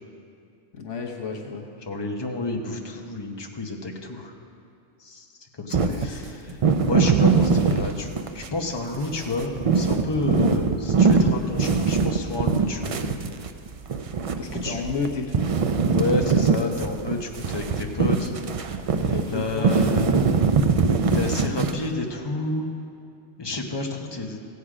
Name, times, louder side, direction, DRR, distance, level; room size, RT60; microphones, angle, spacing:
voice 1, 0.7-1.7 5.8-6.6 14.4-15.5 19.1-19.7, left 5 dB, 75° left, 1 dB, 1.3 m, -32 dB
voice 2, 1.9-4.3 5.0-5.3 5.6-13.0 14.6-14.8 15.9-18.3 18.6-18.8 19.3-20.0 21.1-22.7 23.4-24.4, left 2 dB, 25° left, 2 dB, 0.9 m, -30 dB
sound 1, 5.7-8.5 8.9-15.1 15.3-22.0, right 5 dB, 65° right, 0.3 m, -22 dB
15.5 x 8.2 x 4.9 m, 2.5 s
omnidirectional pair, 1.2 m